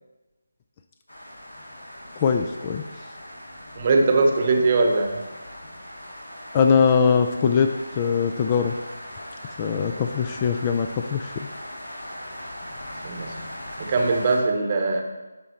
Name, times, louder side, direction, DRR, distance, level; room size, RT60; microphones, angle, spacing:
sound 1, 1.1-14.4, equal, 75° left, 2.8 m, -39 dB
voice 1, 2.2-2.8 6.5-7.7 7.9-8.7 9.6-11.3, left 6 dB, 25° left, 6 dB, 0.4 m, -21 dB
voice 2, 3.8-5.2 13.0-15.0, right 3 dB, 30° right, 3 dB, 0.9 m, -21 dB
11.0 x 3.8 x 4.3 m, 1.1 s
figure-of-eight pair, 160°, 0 cm